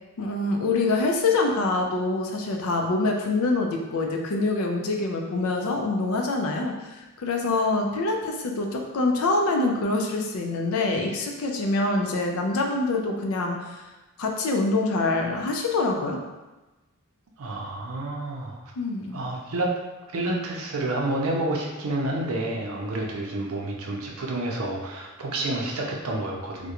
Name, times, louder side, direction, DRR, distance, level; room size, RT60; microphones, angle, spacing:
voice 1, 0.2-13.6 14.2-16.2 18.8-19.2, left 3 dB, 75° left, 2 dB, 0.4 m, -25 dB
voice 2, 17.4-18.6 19.1-19.7 20.1-26.7, right 2 dB, 80° right, -1 dB, 0.5 m, -29 dB
2.4 x 2.1 x 2.8 m, 1.1 s
head